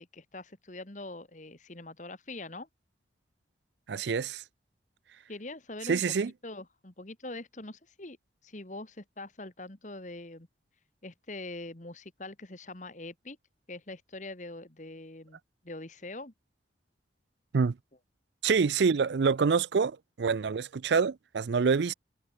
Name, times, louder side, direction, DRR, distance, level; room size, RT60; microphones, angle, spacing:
voice 1, 0.0-2.7 5.3-6.2 6.4-8.2 8.4-10.5 11.0-13.4 13.7-15.4 15.6-16.3, left 2 dB, 40° left, 1.8 m, -43 dB
voice 2, 3.9-4.4 5.9-6.3 17.5-17.7 18.4-21.9, right 5 dB, 70° right, 0.4 m, -26 dB
head